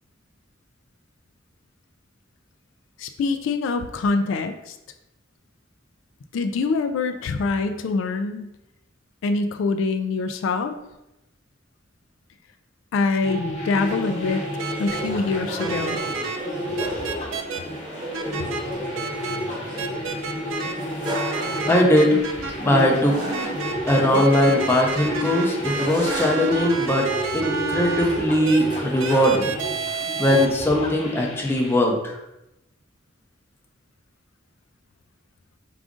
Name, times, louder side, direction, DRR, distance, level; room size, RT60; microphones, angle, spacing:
voice 1, 3.0-4.8 6.3-8.5 9.2-10.7 12.9-14.4 14.8-16.0, left 3 dB, 75° left, 8 dB, 0.3 m, -24 dB
sound 1, 13.2-31.8, equal, 35° left, 0.9 m, -32 dB
sound 2, 13.8-29.3, equal, 25° right, 1.0 m, -34 dB
sound 3, 14.6-15.0 15.6-16.4 16.8-17.6 18.1-18.6 18.9-19.4 19.8-20.7 21.0-22.5 23.3-28.0 28.4-28.6 29.0-30.5, right 5 dB, 80° right, 0.4 m, -30 dB
voice 2, 21.7-22.2 22.6-23.1 23.9-29.6 30.2-32.1, left 1 dB, 10° left, -1 dB, 0.6 m, -20 dB
4.9 x 2.5 x 3.6 m, 0.90 s
head